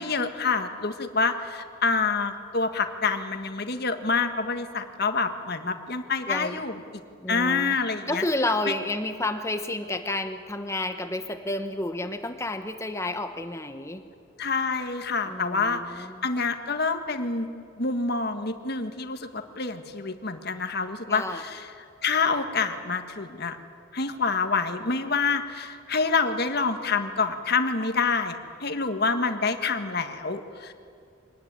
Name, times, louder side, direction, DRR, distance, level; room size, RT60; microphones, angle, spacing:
voice 1, 0.0-6.8 7.3-8.2 14.4-17.5 17.8-21.7 22.0-23.6 23.9-30.7, left 4 dB, 55° left, 7 dB, 1.6 m, -27 dB
voice 2, 6.3-6.6 7.2-7.7 8.1-14.0 15.3-16.3 21.1-21.4, left 2 dB, 15° left, 7 dB, 1.1 m, -30 dB
24.5 x 20.0 x 9.7 m, 2.3 s
head